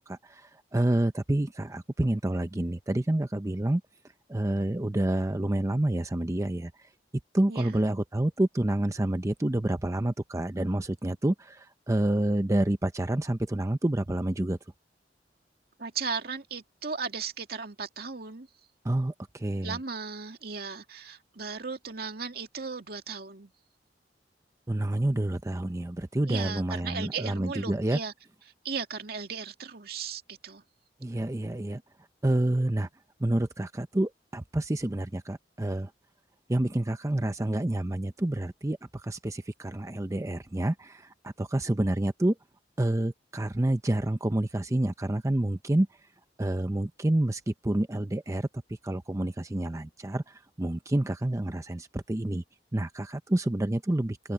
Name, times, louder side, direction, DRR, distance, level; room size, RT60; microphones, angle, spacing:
voice 1, 0.1-3.8 4.3-6.9 7.3-14.6 18.8-19.8 24.7-28.0 31.0-31.8 32.2-32.9 33.2-35.9 36.5-42.4 42.8-46.0 46.4-52.4 52.7-54.3, right 1 dB, 20° right, 0.6 m, -28 dB
voice 2, 7.5-7.8 15.8-18.5 19.6-23.5 26.3-28.1 28.6-30.6, right 5 dB, 60° right, 2.3 m, -36 dB
head